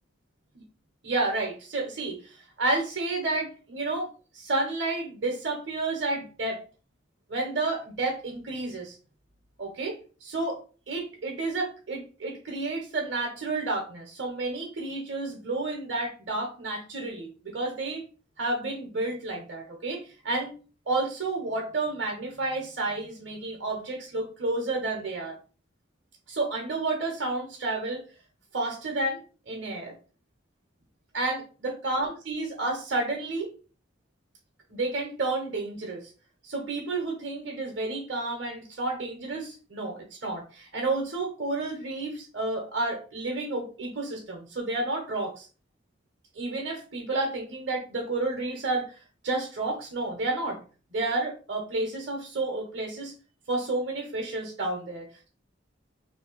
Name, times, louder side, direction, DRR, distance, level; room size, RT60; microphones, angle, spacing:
voice 1, 1.0-2.2 2.6-6.6 7.3-9.0 9.6-10.6 10.9-18.0 18.4-20.5 20.9-25.3 26.3-28.1 28.5-29.9 31.1-33.5 34.7-36.1 36.4-45.5 46.3-48.9 49.2-50.6 50.9-53.1 53.5-55.3, right 2 dB, 65° right, 1 dB, 1.2 m, -31 dB
3.3 x 3.1 x 4.6 m, 0.35 s
head